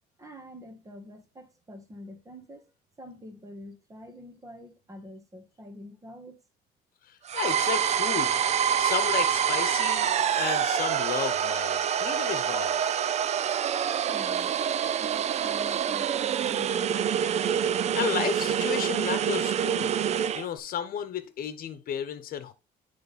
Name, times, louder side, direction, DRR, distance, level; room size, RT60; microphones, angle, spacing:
voice 1, 0.2-2.7 3.0-6.4 13.6-17.0, equal, 20° right, 1.4 m, -46 dB
voice 2, 7.0-8.4 8.8-12.8 17.9-20.0 20.3-22.5, left 9 dB, 60° left, 1.1 m, -33 dB
sound 1, 7.3-20.5, right 8 dB, 40° right, 0.4 m, -26 dB
9.3 x 3.5 x 4.2 m
cardioid pair, 110°, 17 cm